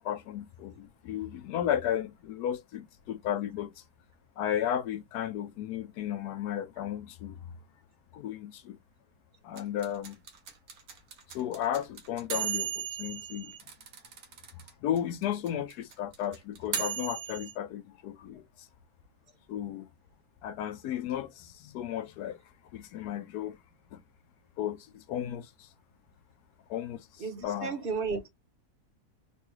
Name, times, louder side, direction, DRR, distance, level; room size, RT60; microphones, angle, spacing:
voice 1, 0.0-3.7 4.4-7.4 8.1-8.8 9.4-10.2 11.3-13.5 14.8-18.4 19.5-19.9 20.4-22.4 22.7-23.6 23.9-24.0 24.6-25.7 26.7-27.8, left 10 dB, 90° left, 1.1 m, -34 dB
sound 1, 9.6-14.7 15.0-15.1 15.2-17.5, right 8 dB, 75° right, 1.3 m, -35 dB
voice 2, 27.2-28.3, right 5 dB, 45° right, 1.0 m, -33 dB
3.7 x 2.3 x 3.0 m
omnidirectional pair, 1.6 m